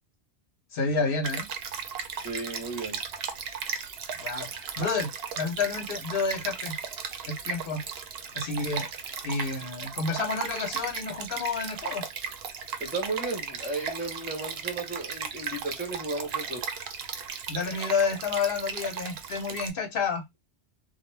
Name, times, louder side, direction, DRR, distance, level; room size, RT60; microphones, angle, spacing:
voice 1, 0.7-1.5 4.2-5.1 5.4-6.8 7.2-7.8 8.3-8.9 9.2-12.1 17.5-20.2, left 4 dB, 60° left, 0.9 m, -29 dB
Stream, 1.2-19.7, right 6 dB, 65° right, 0.7 m, -36 dB
voice 2, 2.2-3.0 12.8-16.7, right 3 dB, 10° right, 0.6 m, -34 dB
2.3 x 2.0 x 3.1 m
omnidirectional pair, 1.2 m